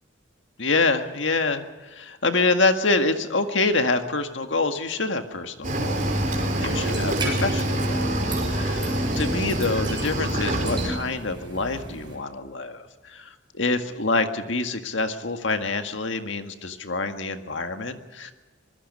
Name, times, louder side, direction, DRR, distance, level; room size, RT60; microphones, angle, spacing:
voice 1, 0.6-18.3, left 3 dB, 70° left, 7 dB, 1.8 m, -26 dB
Cricket / Waves surf, 5.6-10.9, right 1 dB, 40° right, 4.1 m, -25 dB
sound 1, 6.1-12.2, right 2 dB, 25° right, 6.6 m, -37 dB
25.0 x 21.0 x 5.5 m, 1.2 s
head